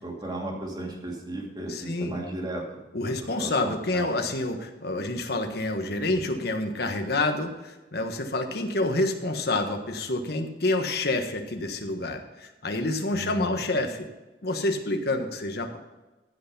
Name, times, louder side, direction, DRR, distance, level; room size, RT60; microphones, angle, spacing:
voice 1, 0.0-4.1 6.0-6.2 13.1-13.6, right 1 dB, 25° right, -1 dB, 2.6 m, -36 dB
voice 2, 1.7-2.2 2.9-14.1 14.4-15.8, left 2 dB, 65° left, 5 dB, 1.4 m, -28 dB
14.5 x 5.9 x 5.4 m, 1.1 s
head